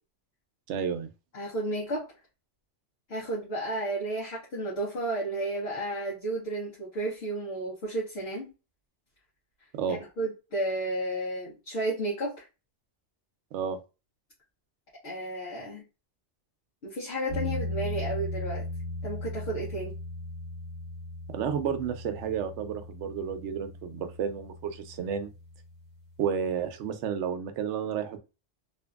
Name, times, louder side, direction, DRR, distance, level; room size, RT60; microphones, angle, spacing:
voice 1, 0.7-1.1 9.8-10.0 13.5-13.8 21.3-25.3 26.2-28.2, right 7 dB, 80° right, 8 dB, 0.9 m, -31 dB
voice 2, 1.3-2.1 3.1-8.5 9.9-12.5 15.0-15.8 16.8-18.6 19.0-20.0, right 1 dB, 60° left, -6 dB, 1.1 m, -32 dB
sound 1, 17.3-26.2, left 1 dB, 20° right, 1.0 m, -38 dB
2.8 x 2.5 x 2.2 m, 0.29 s
omnidirectional pair, 1.2 m